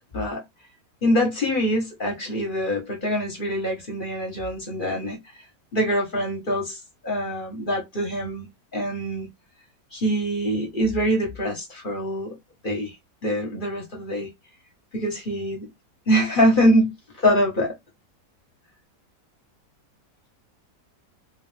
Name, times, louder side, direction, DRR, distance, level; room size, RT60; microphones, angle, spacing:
voice 1, 1.0-5.2 5.7-8.5 8.7-9.3 9.9-12.4 12.6-12.9 13.2-14.3 14.9-15.7 16.1-16.9 17.2-17.7, equal, 35° left, 1.2 m, -24 dB
3.7 x 2.5 x 3.3 m
omnidirectional pair, 1.8 m